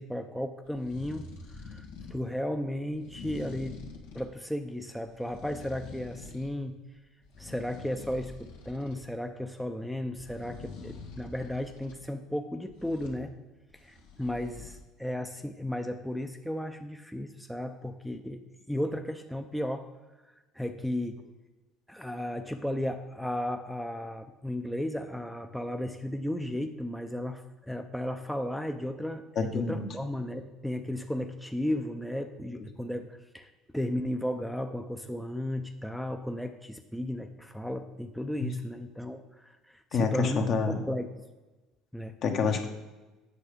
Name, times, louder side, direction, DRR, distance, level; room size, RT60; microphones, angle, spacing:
voice 1, 0.0-3.7 4.1-6.7 7.4-13.3 13.7-18.4 18.7-19.9 20.5-21.2 21.9-40.4 40.7-41.2 41.9-42.2, left 1 dB, ahead, 5 dB, 0.5 m, -34 dB
sound 1, 0.6-2.2 2.9-4.3 5.0-6.6 7.0-9.0 10.2-12.0 12.7-13.2 13.7-14.8, left 3 dB, 90° left, 1.7 m, -46 dB
voice 2, 29.4-29.8 38.4-38.5 39.9-40.8 42.2-42.7, left 4 dB, 50° left, 4 dB, 1.2 m, -27 dB
8.4 x 6.5 x 5.1 m, 1.1 s
supercardioid pair, 110°, 0 cm